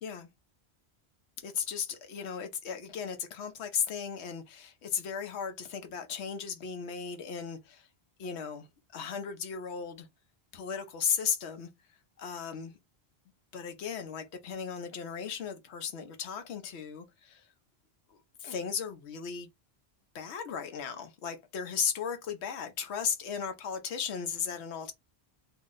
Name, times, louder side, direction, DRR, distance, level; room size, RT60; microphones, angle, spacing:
voice 1, 1.4-7.9 8.2-10.1 10.5-11.7 12.2-12.8 13.5-17.5 18.1-19.5 20.1-24.9, left 7 dB, 85° left, 1.0 m, -36 dB
2.6 x 2.1 x 3.6 m
omnidirectional pair, 1.1 m